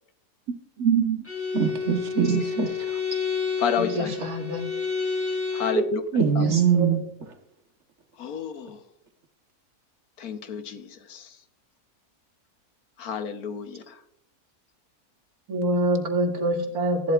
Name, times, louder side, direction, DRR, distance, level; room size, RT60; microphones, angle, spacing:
voice 1, 0.8-1.2 3.8-4.6 5.7-5.8 6.4-7.0 15.5-17.1, right 2 dB, 80° right, 2.3 m, -25 dB
Bowed string instrument, 1.2-5.9, left 5 dB, 10° left, 2.5 m, -29 dB
voice 2, 1.5-2.7 6.1-7.0, right 6 dB, 50° right, 1.5 m, -22 dB
voice 3, 3.6-4.1 5.5-6.0 6.4-6.5 8.2-8.8 10.2-10.8 11.1-11.2 13.0-13.8, left 7 dB, 75° left, 1.4 m, -30 dB
14.5 x 11.5 x 2.4 m
omnidirectional pair, 1.6 m